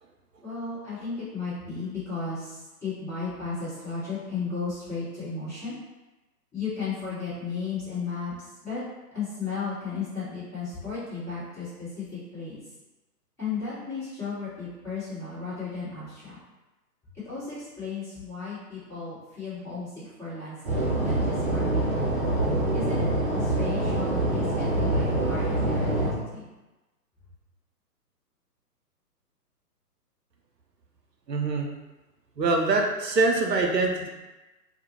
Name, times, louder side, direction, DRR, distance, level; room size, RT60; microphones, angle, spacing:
voice 1, 0.4-5.8 6.5-8.8 9.1-12.6 13.4-16.4 17.1-22.1 22.7-23.1 23.4-26.4, left 4 dB, 5° left, -17 dB, 0.9 m, -35 dB
sound 1, 20.6-26.1, right 1 dB, 35° right, 0.5 m, -25 dB
voice 2, 31.3-31.7 32.4-34.1, right 3 dB, 90° right, 1 dB, 0.6 m, -24 dB
2.5 x 2.0 x 2.9 m, 1.1 s
figure-of-eight pair, 130°, 48 cm